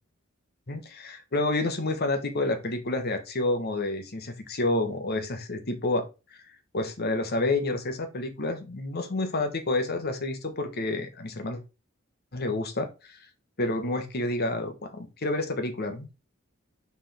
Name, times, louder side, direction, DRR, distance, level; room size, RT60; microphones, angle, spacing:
voice 1, 0.7-6.1 6.3-6.4 6.7-11.6 12.3-13.2 13.6-16.1, left 2 dB, 50° left, 7 dB, 1.2 m, -29 dB
5.9 x 4.9 x 3.4 m, 0.29 s
head